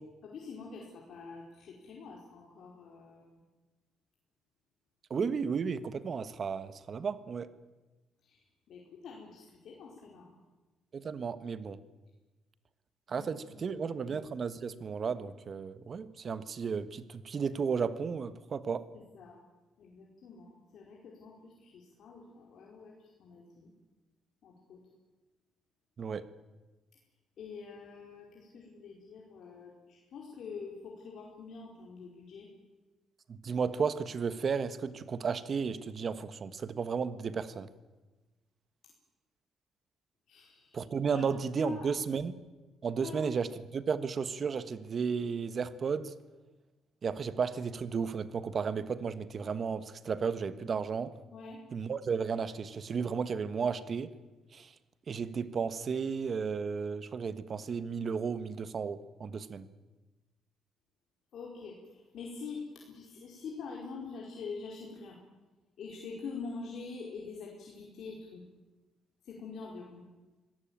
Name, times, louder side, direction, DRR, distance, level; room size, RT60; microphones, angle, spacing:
voice 1, 0.2-3.4 8.2-8.4 8.7-10.4 13.1-14.0 19.1-19.4 19.8-23.7 24.4-24.8 27.4-32.5 40.3-40.8 41.1-41.2 41.6-41.9 43.0-43.2 51.3-51.6 61.3-65.2 65.8-68.4 69.2-70.0, left 4 dB, 65° left, -2 dB, 4.9 m, -45 dB
voice 2, 5.1-7.5 10.9-11.8 13.1-18.9 26.0-26.3 33.3-37.7 40.7-42.4 42.8-46.2 47.0-51.1 51.7-54.1 54.5-54.7 55.1-59.7, right 6 dB, 45° right, 14 dB, 1.4 m, -33 dB
25.5 x 18.0 x 8.9 m, 1.2 s
cardioid pair, 110°, 0 cm